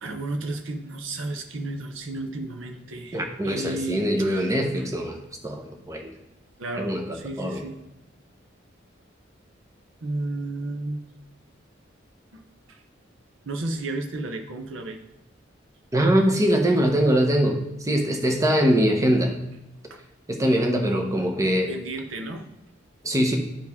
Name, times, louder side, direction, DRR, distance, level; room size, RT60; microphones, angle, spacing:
voice 1, 0.0-4.9 6.6-7.8 10.0-11.0 12.3-12.4 12.7-12.8 13.5-15.0 19.9-20.0 21.7-22.5, right 2 dB, 90° right, 5 dB, 0.8 m, -33 dB
voice 2, 3.1-5.2 5.4-6.1 6.8-7.0 7.4-7.6 15.9-19.4 20.3-21.7 23.0-23.4, equal, 15° right, 3 dB, 0.8 m, -22 dB
10.5 x 4.7 x 3.6 m, 0.96 s
head